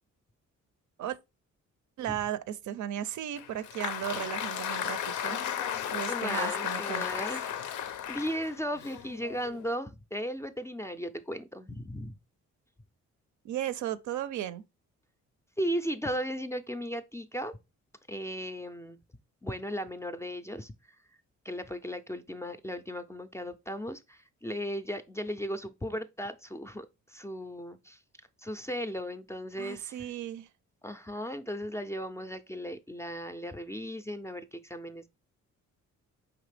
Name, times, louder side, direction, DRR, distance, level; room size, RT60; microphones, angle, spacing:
voice 1, 2.0-5.0 5.2-5.4 5.9-7.2 13.4-14.6 29.6-30.5, right 11 dB, 80° right, 0.5 m, -35 dB
Applause, 3.4-9.7, left 9 dB, 85° left, 0.5 m, -34 dB
voice 2, 6.1-12.2 15.6-17.6 18.1-19.0 19.4-20.7 21.5-28.0 28.4-30.1 30.8-35.1, equal, 10° left, 0.3 m, -36 dB
4.9 x 3.3 x 3.2 m
cardioid pair, 100°, 29 cm